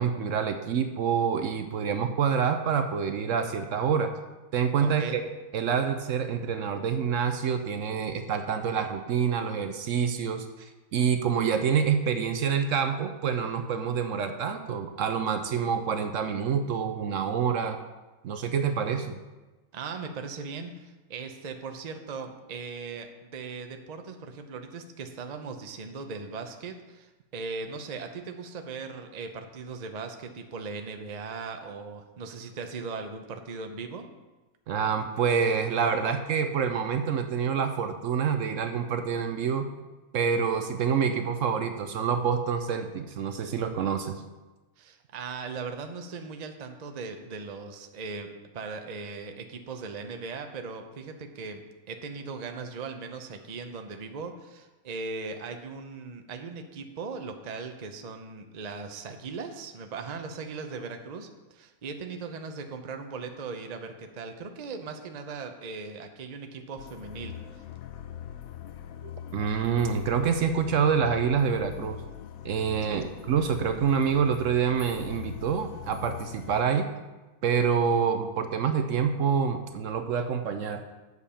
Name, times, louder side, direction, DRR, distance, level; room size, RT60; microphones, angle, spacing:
voice 1, 0.0-4.1 4.5-5.2 5.5-17.8 18.2-19.2 34.7-39.7 40.1-44.2 69.3-72.0 72.4-76.9 77.4-80.8, right 7 dB, 65° right, 7 dB, 1.0 m, -27 dB
voice 2, 4.8-5.2 19.7-34.1 44.8-48.3 48.5-67.6 72.8-73.0, right 4 dB, 40° right, 5 dB, 0.6 m, -39 dB
sound 1, 66.8-76.6, left 10 dB, 75° left, 1.0 m, -42 dB
8.3 x 6.8 x 5.6 m, 1.2 s
omnidirectional pair, 1.5 m